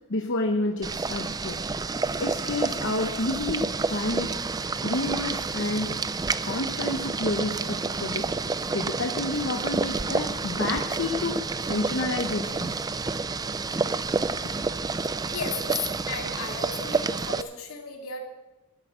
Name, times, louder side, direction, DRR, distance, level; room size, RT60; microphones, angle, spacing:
voice 1, 0.1-1.6 2.2-4.4 4.8-6.0 6.4-8.3 8.7-12.9, left 2 dB, 60° left, 3 dB, 0.9 m, -30 dB
Boiling, 0.8-17.4, right 4 dB, 20° right, 0.4 m, -29 dB
voice 2, 16.1-18.2, left 3 dB, 80° left, 1 dB, 2.4 m, -35 dB
12.5 x 8.1 x 7.3 m, 1.0 s
head